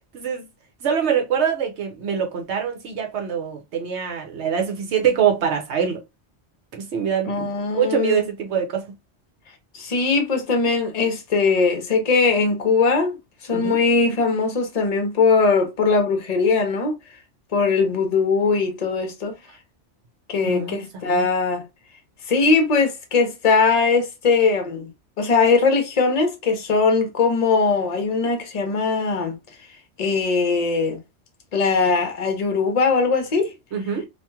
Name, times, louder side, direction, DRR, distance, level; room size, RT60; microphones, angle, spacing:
voice 1, 0.8-6.0 6.7-7.5 7.8-8.9 13.5-13.8 20.4-21.3 33.7-34.1, right 7 dB, 75° right, 1.0 m, -24 dB
voice 2, 7.3-8.2 9.7-13.2 13.4-17.0 17.5-19.3 20.3-21.6 22.3-24.9 25.2-29.3 30.0-31.0 31.5-33.5, left 4 dB, 40° left, 0.8 m, -20 dB
2.9 x 2.5 x 2.3 m
omnidirectional pair, 1.2 m